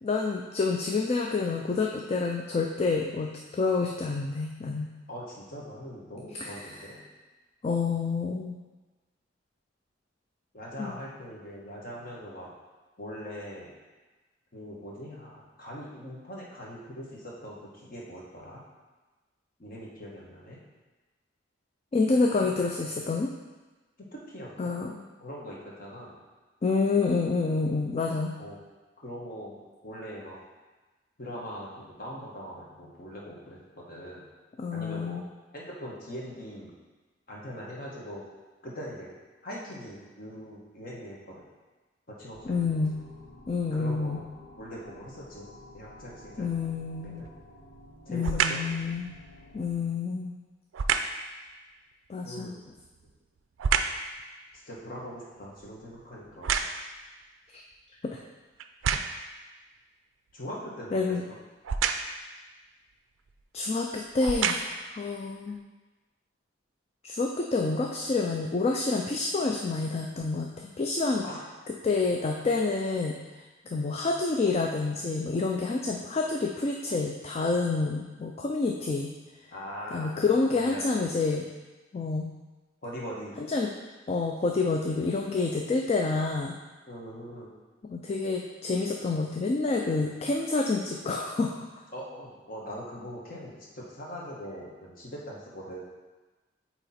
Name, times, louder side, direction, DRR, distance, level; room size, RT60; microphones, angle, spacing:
voice 1, 0.0-4.9 6.3-6.7 7.6-8.6 10.8-10.9 21.9-23.3 24.6-25.0 26.6-28.3 34.6-35.3 42.5-42.9 43.5-44.2 46.4-47.2 48.1-49.1 49.5-50.4 52.1-52.6 57.5-57.6 58.0-58.2 60.9-61.2 63.5-65.6 67.0-71.2 71.8-79.1 79.9-81.5 81.9-82.3 83.4-83.7 84.1-86.6 87.9-91.7, left 3 dB, 30° left, 1 dB, 0.3 m, -28 dB
voice 2, 5.1-7.1 10.5-12.5 13.0-13.7 14.5-18.6 19.6-20.6 22.4-22.5 24.0-24.8 25.2-26.2 28.4-28.6 29.0-30.4 31.2-34.2 34.7-35.2 35.5-36.7 37.3-38.2 38.6-39.1 39.4-41.4 42.2-42.6 43.7-44.2 44.6-45.5 45.7-46.5 47.0-47.3 48.0-48.6 52.2-52.5 54.7-56.6 60.3-61.4 71.2-71.4 79.5-81.0 82.8-83.3 86.9-87.5 91.9-95.8, equal, 50° left, -4 dB, 1.3 m, -41 dB
sound 1, 42.3-49.7, left 1 dB, 75° left, 0.8 m, -51 dB
sound 2, 47.1-47.5 48.2-48.7 50.7-51.2 52.7-54.1 54.6-57.1 57.7-57.8 58.6-59.3 61.6-62.2 63.3-63.4 64.1-64.9 65.5-65.6, right 6 dB, 85° right, 0.4 m, -29 dB
7.9 x 3.0 x 4.2 m, 1.2 s
head